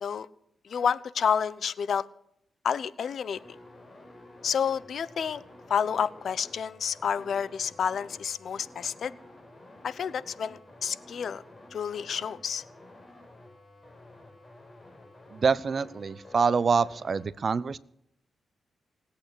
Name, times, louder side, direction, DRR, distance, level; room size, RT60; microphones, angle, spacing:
voice 1, 0.6-2.0 2.6-3.4 4.4-5.4 5.7-9.1 9.8-11.4 11.7-12.6, left 7 dB, 70° left, 17 dB, 0.8 m, -29 dB
sound 1, 3.3-17.3, left 1 dB, 25° left, 8.0 m, -51 dB
voice 2, 15.3-17.8, right 5 dB, 50° right, 18 dB, 0.7 m, -26 dB
19.5 x 8.6 x 8.0 m, 0.74 s
cardioid pair, 80°, 0 cm